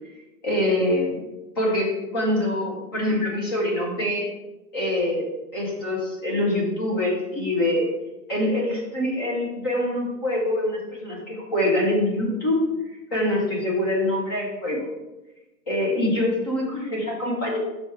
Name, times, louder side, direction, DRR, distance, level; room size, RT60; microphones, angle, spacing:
voice 1, 0.4-1.2 1.6-4.3 4.7-5.2 5.5-7.9 8.3-12.6 13.1-14.9 15.7-17.6, left 1 dB, 15° left, -3 dB, 0.8 m, -24 dB
5.9 x 4.8 x 4.5 m, 1.0 s
hypercardioid pair, 170°, 50 cm